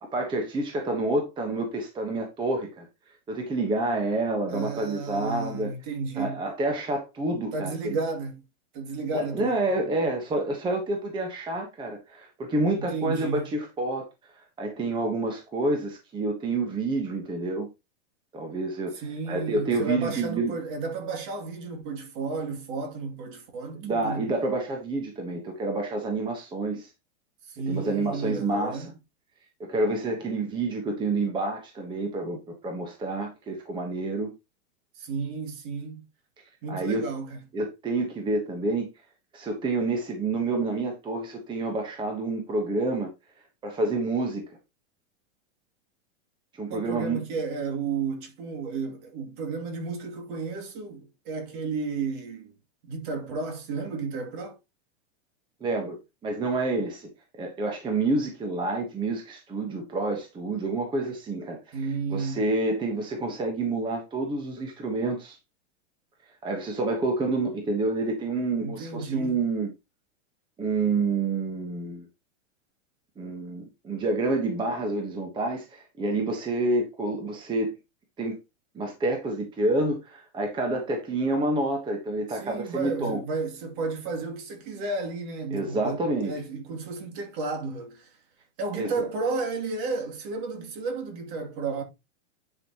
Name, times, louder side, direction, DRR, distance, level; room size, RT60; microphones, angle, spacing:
voice 1, 0.1-2.9 3.3-5.7 6.2-8.0 9.1-17.7 18.3-20.6 23.8-26.9 27.7-28.9 29.6-34.3 36.7-37.0 37.5-38.9 39.3-43.1 43.6-44.6 46.5-47.2 55.6-56.0 56.2-57.1 57.4-65.4 66.4-69.7 70.6-72.1 73.2-77.7 78.2-78.4 78.7-83.2 85.5-86.3 88.7-89.1, right 2 dB, 15° right, 1.2 m, -28 dB
voice 2, 4.5-6.4 7.5-8.4 8.7-9.5 12.8-13.5 18.9-24.3 27.5-28.9 35.0-36.0 36.6-37.4 46.7-52.5 52.8-54.6 61.7-62.4 68.6-69.4 82.3-86.0 86.2-88.1 88.6-91.8, right 4 dB, 45° right, 2.7 m, -32 dB
10.5 x 5.7 x 3.0 m
supercardioid pair, 160°, 36 cm